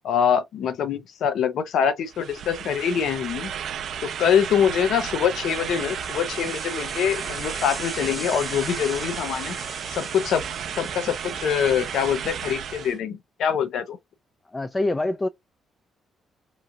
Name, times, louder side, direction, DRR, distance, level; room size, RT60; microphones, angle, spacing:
voice 1, 0.0-3.5 4.0-9.6 9.9-10.4 10.8-14.0, left 8 dB, 75° left, 0.6 m, -24 dB
sound 1, 2.1-13.0, right 8 dB, 65° right, 0.4 m, -33 dB
sound 2, 5.4-12.5, equal, 5° left, 0.9 m, -40 dB
voice 2, 14.5-15.3, left 2 dB, 20° left, 0.3 m, -25 dB
3.0 x 2.4 x 2.7 m
cardioid pair, 90°, 0 cm